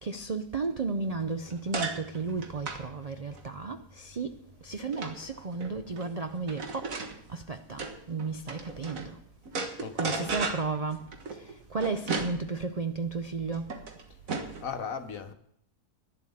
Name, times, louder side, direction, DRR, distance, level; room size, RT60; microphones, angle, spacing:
voice 1, 0.0-6.9 7.3-7.8 8.1-9.2 9.6-13.7, right 4 dB, 90° right, 0.3 m, -34 dB
sound 1, 1.0-9.1 9.5-14.7, right 4 dB, 60° right, 1.8 m, -37 dB
voice 2, 9.8-10.4 14.6-15.3, left 6 dB, 65° left, 1.5 m, -38 dB
11.0 x 7.4 x 9.9 m
omnidirectional pair, 1.6 m